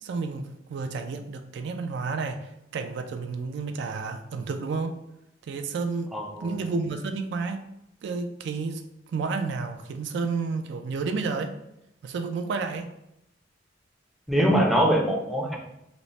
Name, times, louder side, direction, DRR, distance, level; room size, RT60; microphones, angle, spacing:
voice 1, 0.0-2.4 2.7-5.0 5.4-7.7 8.0-8.8 9.1-11.5 12.0-12.9, right 4 dB, 65° right, 7 dB, 0.3 m, -31 dB
voice 2, 6.1-6.7 14.3-15.6, right 1 dB, ahead, -1 dB, 0.5 m, -23 dB
4.0 x 2.0 x 3.1 m, 0.85 s
head